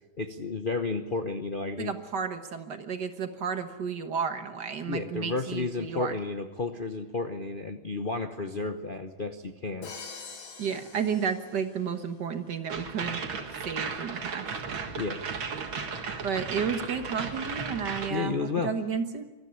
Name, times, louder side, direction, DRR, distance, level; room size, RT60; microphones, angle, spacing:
voice 1, 0.2-1.9 4.9-9.9 14.9-15.2 18.1-18.7, left 3 dB, 40° left, 5 dB, 0.7 m, -32 dB
voice 2, 1.8-6.1 10.6-13.2 13.6-14.4 16.2-18.4 18.6-19.2, right 6 dB, 60° right, 8 dB, 1.9 m, -32 dB
Crash cymbal, 9.8-12.0, left 4 dB, 80° left, 2.8 m, -45 dB
sound 1, 12.7-18.1, right 5 dB, 75° right, 2.6 m, -35 dB
23.5 x 14.0 x 9.9 m, 1.2 s
omnidirectional pair, 2.2 m